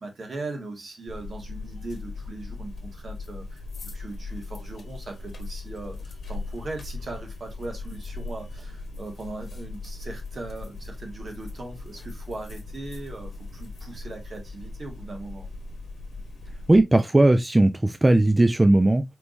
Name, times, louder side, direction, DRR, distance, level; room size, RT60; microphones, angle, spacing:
voice 1, 0.0-15.5, right 2 dB, 60° right, 1.6 m, -39 dB
sound 1, 1.1-16.8, left 3 dB, 70° left, 1.0 m, -38 dB
voice 2, 16.7-19.0, right 2 dB, 20° right, 0.4 m, -18 dB
4.6 x 3.5 x 2.6 m
wide cardioid pair, 105°, 0 cm